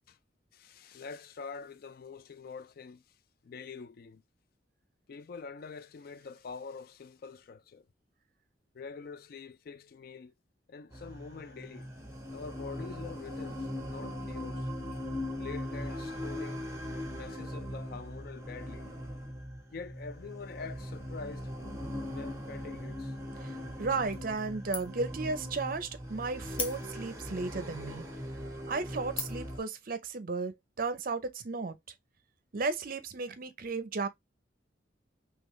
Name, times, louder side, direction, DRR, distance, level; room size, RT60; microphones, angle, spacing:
voice 1, 0.5-3.0 3.4-4.2 5.1-7.9 8.7-10.3 10.7-11.9 12.3-14.7 15.4-16.6 17.1-18.9 19.7-21.5 22.1-23.1, left 5 dB, 55° left, 0.4 m, -45 dB
sound 1, 10.9-29.6, equal, 15° right, 1.1 m, -40 dB
voice 2, 23.4-28.0 28.7-31.7 32.5-34.1, right 4 dB, 50° right, 0.6 m, -34 dB
sound 2, 24.1-24.5 24.7-25.1 25.5-25.6 26.5-27.2 27.9-28.0 28.5-28.7 29.2-29.6, left 4 dB, 30° left, 1.0 m, -38 dB
3.8 x 3.0 x 3.1 m
head